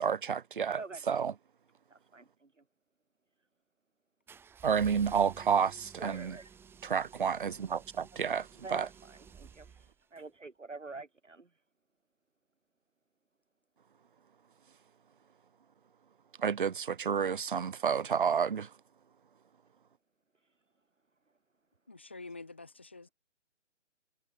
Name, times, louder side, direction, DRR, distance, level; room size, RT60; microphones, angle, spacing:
voice 1, 0.0-0.8 1.1-1.3 4.6-6.1 6.8-8.5 8.7-8.9 16.4-18.7, right 7 dB, 45° right, 0.4 m, -30 dB
voice 2, 1.9-2.6 6.0-6.5 8.5-11.6 20.4-20.6, right 3 dB, 75° right, 4.7 m, -46 dB
sound 1, 4.3-10.3, right 7 dB, 5° right, 2.1 m, -54 dB
voice 3, 21.9-23.1, left 3 dB, 10° left, 0.5 m, -47 dB
figure-of-eight pair, 140°, 37 cm